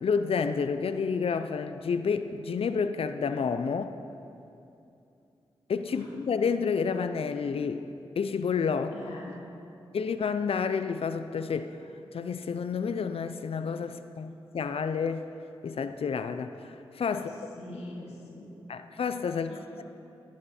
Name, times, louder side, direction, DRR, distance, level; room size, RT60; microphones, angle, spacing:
voice 1, 0.0-3.9 5.7-7.9 8.2-9.0 9.9-11.7 12.1-15.3 15.6-17.3 18.7-19.8, left 5 dB, 65° left, 10 dB, 0.5 m, -30 dB
voice 2, 8.9-9.3 17.1-18.5 19.5-19.7, left 1 dB, 85° left, -3 dB, 2.1 m, -44 dB
14.0 x 11.5 x 4.3 m, 2.7 s
supercardioid pair, 40°, 11 cm